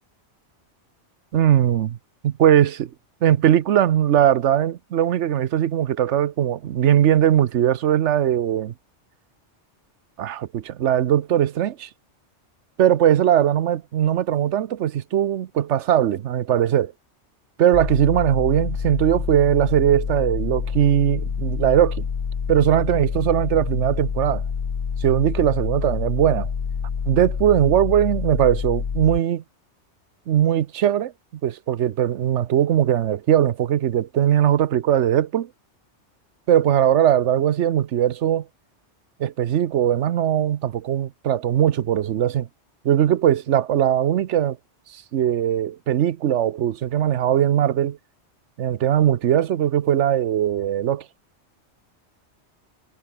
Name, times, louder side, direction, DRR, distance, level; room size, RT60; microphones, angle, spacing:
voice 1, 1.3-2.0 2.2-2.9 3.2-8.7 10.2-11.9 12.8-16.9 17.6-22.1 22.5-24.4 25.0-26.5 27.1-29.4 30.3-31.1 31.4-35.5 36.5-38.5 39.2-42.5 42.8-44.6 44.9-48.0 48.6-51.0, right 10 dB, 75° right, 1.1 m, -20 dB
sound 1, 17.7-29.2, left 6 dB, 45° left, 1.1 m, -27 dB
omnidirectional pair, 1.2 m